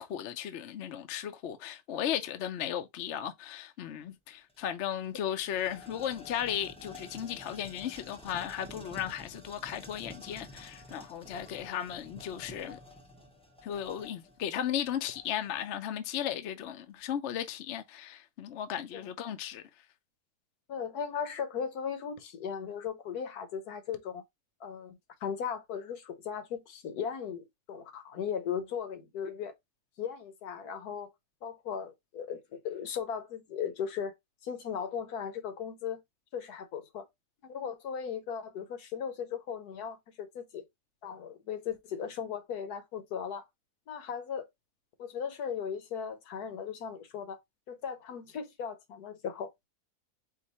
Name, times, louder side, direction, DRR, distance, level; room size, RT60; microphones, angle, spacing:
voice 1, 0.0-12.8 13.6-19.6, left 10 dB, 60° left, 0.8 m, -36 dB
sound 1, 4.5-4.6 4.9-15.6, left 2 dB, 5° left, 0.4 m, -50 dB
voice 2, 20.7-24.2 24.6-29.5 30.0-31.1 31.4-34.1 34.4-36.0 36.3-37.1 37.4-40.6 41.0-43.5 43.9-44.5 45.0-47.4 47.7-49.5, left 7 dB, 75° left, 1.4 m, -37 dB
4.6 x 2.5 x 4.1 m
omnidirectional pair, 1.7 m